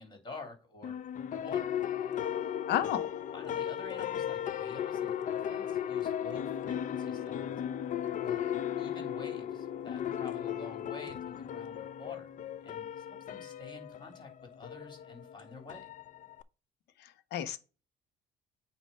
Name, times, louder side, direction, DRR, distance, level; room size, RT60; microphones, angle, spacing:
voice 1, 0.0-1.7 3.3-7.6 8.2-8.4 8.7-12.3 12.6-15.9, left 3 dB, 25° left, 3.3 m, -48 dB
sound 1, 0.8-16.4, left 10 dB, 50° left, 0.5 m, -36 dB
voice 2, 2.7-3.1 17.0-17.6, left 11 dB, 80° left, 1.1 m, -32 dB
8.8 x 3.1 x 5.5 m
cardioid pair, 110°, 17 cm